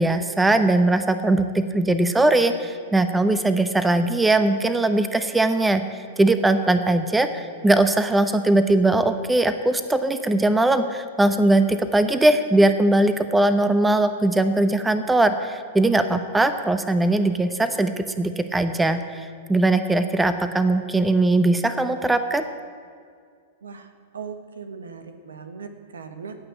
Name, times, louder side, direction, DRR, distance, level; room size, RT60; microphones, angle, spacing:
voice 1, 0.0-22.4, right 2 dB, 10° right, 10 dB, 0.8 m, -20 dB
voice 2, 24.1-26.4, right 5 dB, 90° right, 8 dB, 1.3 m, -38 dB
16.5 x 6.1 x 8.9 m, 2.1 s
hypercardioid pair, 115°, 0 cm